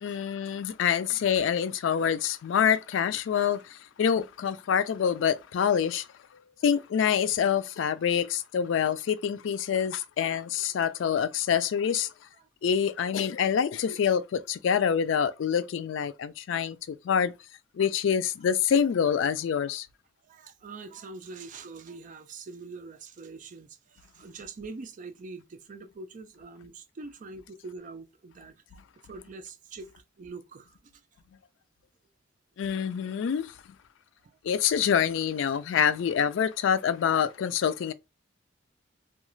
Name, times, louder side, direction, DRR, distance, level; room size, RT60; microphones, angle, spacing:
voice 1, 0.0-6.1 6.6-12.1 12.6-17.3 17.7-19.9 32.6-33.5 34.4-37.9, left 7 dB, 80° left, 0.3 m, -26 dB
voice 2, 20.2-28.6 29.0-31.0 34.2-34.4, right 3 dB, 45° right, 0.4 m, -44 dB
2.3 x 2.3 x 3.0 m
head